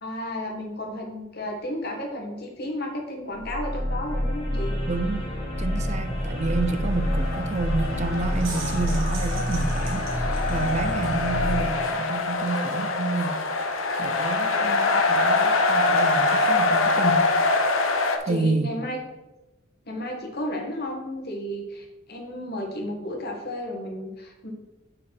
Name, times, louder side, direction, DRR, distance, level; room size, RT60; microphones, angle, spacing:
voice 1, 0.0-4.7 18.3-19.0 19.9-24.5, left 1 dB, 50° left, 1 dB, 1.6 m, -33 dB
sound 1, 3.3-11.7, equal, 25° left, 2.2 m, -28 dB
voice 2, 4.9-5.3 5.6-13.4 14.0-17.3 18.2-18.7, right 3 dB, 35° right, 9 dB, 0.4 m, -29 dB
sound 2, 6.6-18.2, left 3 dB, 85° left, 0.9 m, -24 dB
sound 3, 8.2-11.2, right 5 dB, 75° right, 1.3 m, -41 dB
5.8 x 5.0 x 6.0 m, 1.0 s
head